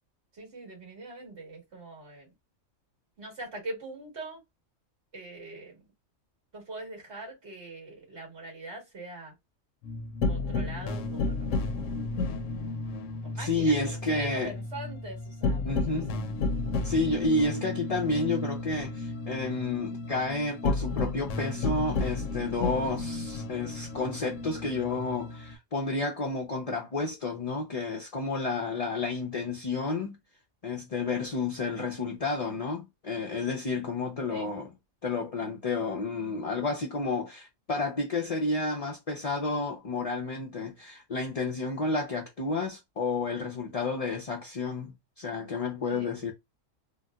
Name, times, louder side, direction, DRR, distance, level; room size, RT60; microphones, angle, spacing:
voice 1, 0.3-2.3 3.2-4.4 5.1-5.8 6.5-9.3 10.2-11.5 13.2-13.7 14.1-16.2 34.3-34.5 45.9-46.1, right 2 dB, 60° right, 2.3 m, -42 dB
sound 1, 9.8-25.6, left 3 dB, 75° left, 0.9 m, -32 dB
voice 2, 13.3-14.5 15.6-16.2 16.8-30.2 30.6-34.7 35.0-46.3, left 3 dB, 45° left, 0.4 m, -31 dB
3.9 x 2.2 x 2.3 m
omnidirectional pair, 1.3 m